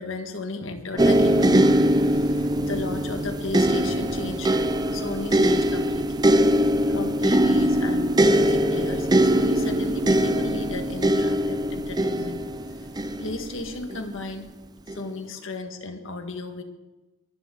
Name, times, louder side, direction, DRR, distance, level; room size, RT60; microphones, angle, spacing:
voice 1, 0.0-4.5 4.9-6.3 6.6-12.4 12.8-12.9 13.2-14.5 14.9-16.6, left 3 dB, 70° left, 6 dB, 1.7 m, -35 dB
sound 1, 1.0-14.1 14.9-15.0, right 1 dB, 20° right, 0.6 m, -22 dB
23.0 x 11.5 x 3.9 m, 1.1 s
head